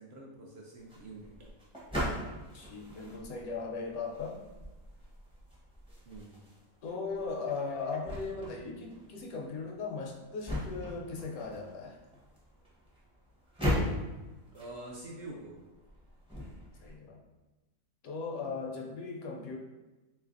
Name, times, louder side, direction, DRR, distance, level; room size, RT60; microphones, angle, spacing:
voice 1, 0.0-1.3 6.1-6.4 14.5-15.6 18.4-18.5, right 2 dB, 65° right, -2 dB, 0.6 m, -46 dB
sound 1, 0.8-16.9, left 1 dB, 5° right, 0.4 m, -40 dB
voice 2, 2.5-4.4 6.8-12.0 16.8-17.2 18.0-19.6, left 4 dB, 75° left, 0 dB, 1.0 m, -38 dB
3.3 x 3.2 x 2.5 m, 1.1 s
omnidirectional pair, 1.6 m